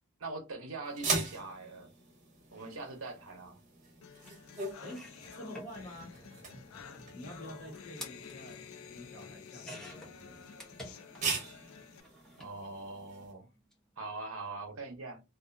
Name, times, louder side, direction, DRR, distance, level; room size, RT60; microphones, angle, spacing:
voice 1, 0.2-1.9 2.5-3.6 12.4-13.5 14.0-15.2, right 3 dB, 85° right, 0.8 m, -42 dB
sound 1, 0.8-13.3, right 4 dB, 35° right, 0.8 m, -41 dB
sound 2, 4.0-12.0, left 7 dB, 80° left, 0.4 m, -51 dB
sound 3, 4.3-4.4 4.7-11.5 11.7-12.5 13.6-13.7 14.0-14.1, equal, 5° left, 0.7 m, -51 dB
voice 2, 4.8-5.1 5.4-6.1 7.1-8.6 8.9-10.5, left 1 dB, 40° left, 1.1 m, -48 dB
2.5 x 2.3 x 2.5 m
head